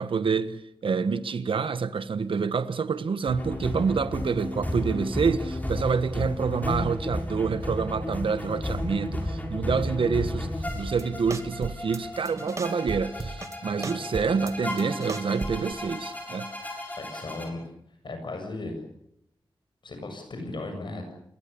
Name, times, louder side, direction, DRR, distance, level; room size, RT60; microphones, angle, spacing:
voice 1, 0.0-16.5, right 5 dB, 90° right, 1.3 m, -27 dB
sound 1, 3.3-17.5, left 1 dB, 20° left, 7.0 m, -33 dB
sound 2, 10.7-11.0 11.3-12.0 12.3-13.6 13.8-15.7, right 3 dB, 35° right, 2.3 m, -35 dB
voice 2, 17.0-17.6 18.0-18.7 19.8-21.1, left 2 dB, 65° left, 7.5 m, -36 dB
28.5 x 23.0 x 7.0 m
wide cardioid pair, 105°, 9 cm